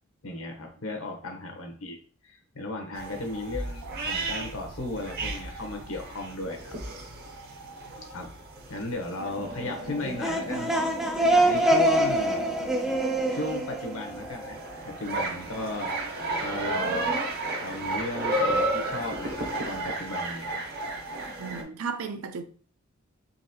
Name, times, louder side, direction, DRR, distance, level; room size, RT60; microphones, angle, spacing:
voice 1, 0.2-2.0 2.2-6.7 8.1-8.3 8.7-10.7 11.4-12.4 13.3-15.9 16.4-17.1 17.6-20.6, left 2 dB, 70° left, 1.0 m, -35 dB
sound 1, 2.9-21.6, right 2 dB, 50° right, 0.8 m, -33 dB
sound 2, 10.0-14.7, right 1 dB, ahead, 0.5 m, -25 dB
voice 2, 21.4-22.4, right 5 dB, 75° right, 0.5 m, -36 dB
4.0 x 3.0 x 2.8 m
head